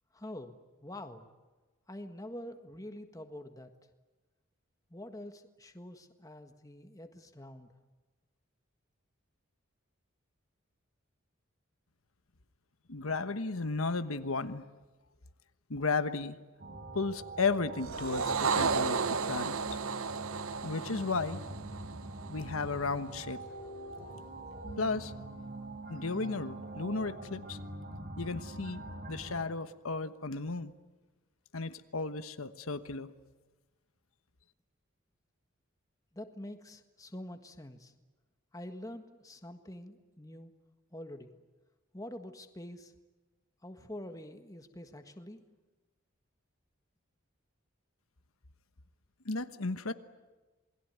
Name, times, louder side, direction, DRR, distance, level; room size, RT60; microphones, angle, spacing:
voice 1, 0.1-1.3 1.9-3.7 4.9-7.7 36.1-37.9 38.5-40.5 40.9-41.3 41.9-42.9 43.6-45.4, left 1 dB, 15° left, 7 dB, 1.6 m, -46 dB
voice 2, 12.9-14.6 15.7-16.4 16.9-19.8 20.6-21.4 22.3-23.4 24.8-25.1 25.9-27.6 28.2-28.8 29.1-30.7 31.5-33.1 49.2-49.9, left 3 dB, 90° left, 11 dB, 1.2 m, -34 dB
sound 1, 16.6-29.4, right 2 dB, 45° right, 4.8 m, -44 dB
sound 2, 17.8-22.4, right 5 dB, 85° right, 0.9 m, -33 dB
28.0 x 21.0 x 9.4 m, 1.2 s
head